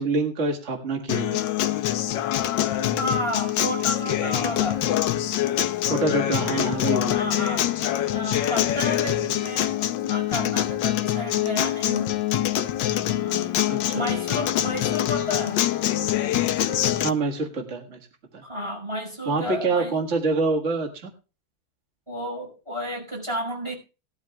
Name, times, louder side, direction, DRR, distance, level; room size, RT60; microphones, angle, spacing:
voice 1, 0.0-1.4 5.9-7.2 13.7-14.1 17.0-18.0 18.3-18.4 19.3-20.9, right 3 dB, 35° right, 1 dB, 1.9 m, -26 dB
Acoustic guitar, 1.1-17.1, left 12 dB, 70° left, 1.3 m, -25 dB
voice 2, 3.0-4.8 7.0-7.7 8.1-12.2 13.0-13.5 13.9-15.6 18.4-20.0 22.1-23.7, left 1 dB, 15° right, 0 dB, 5.0 m, -32 dB
20.0 x 12.0 x 2.3 m, 0.33 s
omnidirectional pair, 2.3 m